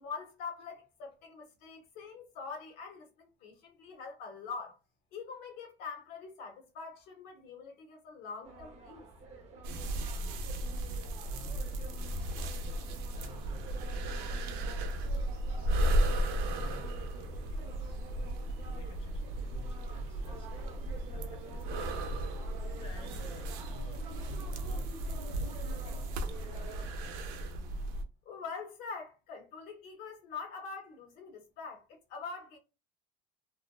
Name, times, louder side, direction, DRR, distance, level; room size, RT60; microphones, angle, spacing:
voice 1, 0.0-4.8 5.1-9.1 28.2-32.6, left 5 dB, 70° left, 0.9 m, -44 dB
sound 1, 8.4-26.9, right 1 dB, 40° right, 0.6 m, -48 dB
sound 2, 9.6-28.0, right 1 dB, 90° right, 0.5 m, -35 dB
voice 2, 11.2-27.1, left 2 dB, 30° left, 0.7 m, -56 dB
2.5 x 2.1 x 2.3 m
cardioid pair, 165°, 16 cm